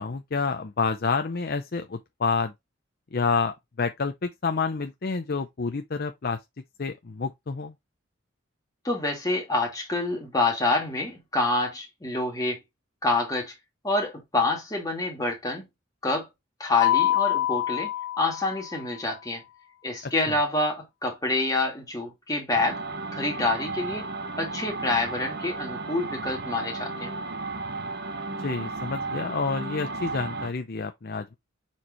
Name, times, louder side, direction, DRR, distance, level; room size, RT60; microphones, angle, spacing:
voice 1, 0.0-2.5 3.1-6.4 6.8-7.7 20.3-20.4 28.4-31.3, left 4 dB, 50° left, 0.6 m, -28 dB
voice 2, 8.8-12.6 13.0-13.5 13.8-15.7 16.0-16.3 16.6-17.9 18.2-19.4 19.8-22.8 23.1-24.1 24.4-27.1, left 2 dB, 20° left, 2.5 m, -27 dB
Mallet percussion, 16.8-18.9, left 13 dB, 65° left, 1.5 m, -25 dB
sound 1, 22.5-30.5, right 3 dB, 50° right, 1.0 m, -34 dB
7.1 x 4.4 x 3.0 m
head